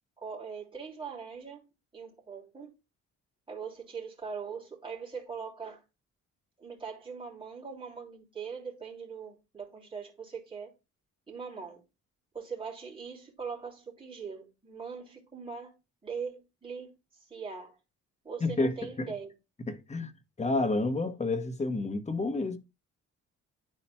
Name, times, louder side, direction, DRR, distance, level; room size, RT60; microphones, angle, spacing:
voice 1, 0.2-1.6 1.9-2.7 3.5-5.8 6.6-10.7 11.3-11.8 12.3-15.7 16.0-17.8 18.2-19.3, right 6 dB, 15° right, 2.9 m, -41 dB
voice 2, 18.4-19.1 19.7-22.6, left 2 dB, 25° left, 1.0 m, -30 dB
11.5 x 4.2 x 2.2 m
cardioid pair, 90°, 30 cm